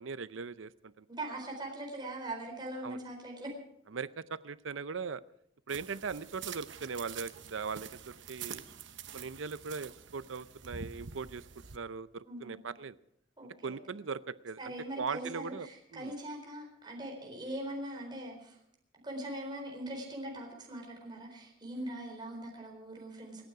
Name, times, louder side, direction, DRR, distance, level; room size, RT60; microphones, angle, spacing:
voice 1, 0.0-1.1 2.8-3.0 3.9-5.2 5.7-8.6 9.1-11.5 11.7-13.0 13.6-15.7 15.9-16.1, right 5 dB, 90° right, 16 dB, 0.6 m, -39 dB
voice 2, 1.1-3.5 12.2-12.5 13.4-13.8 14.6-18.6 19.0-23.4, right 1 dB, 25° right, 0 dB, 4.2 m, -41 dB
sound 1, 5.7-11.8, right 7 dB, 70° right, 1.0 m, -46 dB
28.0 x 9.4 x 4.8 m, 0.71 s
head